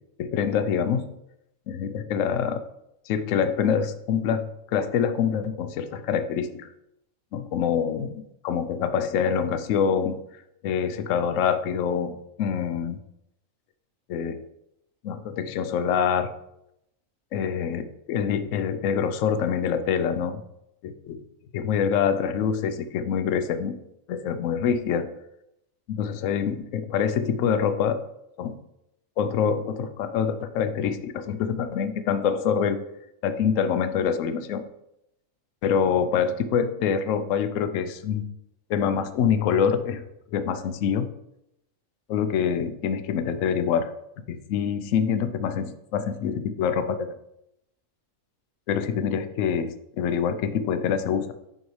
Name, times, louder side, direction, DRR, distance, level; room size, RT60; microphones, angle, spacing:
voice 1, 0.2-1.1 1.7-2.6 3.1-6.7 7.3-10.2 10.6-13.0 14.1-14.4 15.0-16.3 17.3-20.4 20.8-21.2 21.5-23.8 24.1-25.1 25.9-28.0 28.4-28.6 29.2-32.8 33.2-34.6 35.6-38.2 38.7-40.0 40.3-41.1 42.1-43.9 44.3-47.1 48.7-51.3, left 7 dB, 75° left, 10 dB, 1.0 m, -25 dB
7.8 x 5.7 x 3.1 m, 0.81 s
omnidirectional pair, 1.4 m